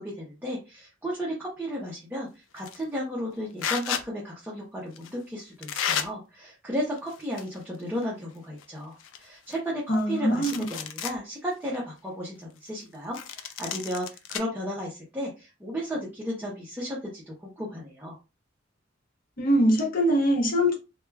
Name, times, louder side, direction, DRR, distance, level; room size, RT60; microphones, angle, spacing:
voice 1, 0.0-18.2, equal, 10° right, 0.6 m, -34 dB
sound 1, 2.6-2.8 3.6-4.0 5.0-5.1 5.6-6.1 7.0-7.6 7.9-8.0 8.6-8.7 9.0-10.0 10.3-11.2 11.7-11.8 13.1-14.4, left 8 dB, 75° left, 0.3 m, -32 dB
voice 2, 9.9-10.6 19.4-20.8, equal, 45° left, 0.7 m, -23 dB
2.2 x 2.2 x 3.2 m
head